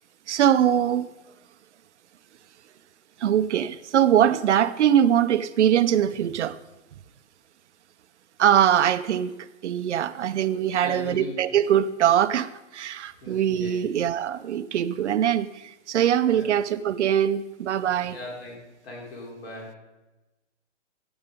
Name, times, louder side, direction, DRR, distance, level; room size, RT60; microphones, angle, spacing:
voice 1, 0.3-1.1 3.2-6.6 8.4-18.2, right 10 dB, 65° right, 12 dB, 0.7 m, -22 dB
voice 2, 10.8-11.4 13.2-13.8 16.3-16.5 18.1-18.6 18.8-19.8, left 1 dB, 50° left, -1 dB, 4.7 m, -38 dB
12.0 x 8.0 x 5.2 m, 1.0 s
hypercardioid pair, 150°, 38 cm